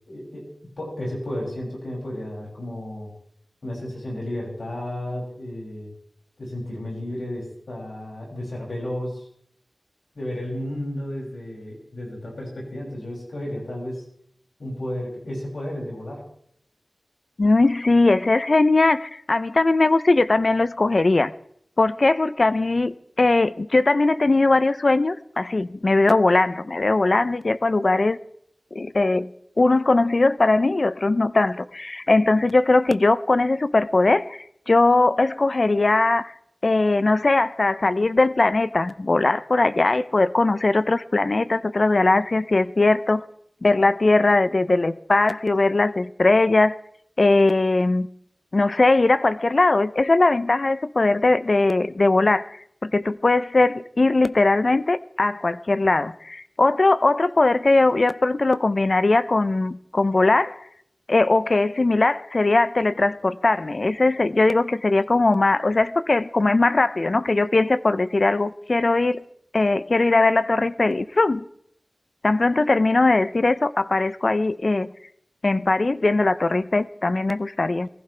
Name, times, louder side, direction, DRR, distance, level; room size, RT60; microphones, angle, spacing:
voice 1, 0.1-0.5 0.8-3.1 3.6-5.9 6.4-9.3 10.1-14.0 14.6-16.2, left 1 dB, 85° left, 6.8 m, -32 dB
voice 2, 17.4-21.3 21.8-28.2 28.7-29.3 29.6-36.3 36.6-43.2 43.6-46.8 47.2-48.1 48.5-52.6 52.8-60.6 61.1-69.2 69.5-71.4 72.2-74.9 75.4-77.9, left 2 dB, 55° left, 0.6 m, -20 dB
22.0 x 15.0 x 3.4 m
wide cardioid pair, 55°, 0 cm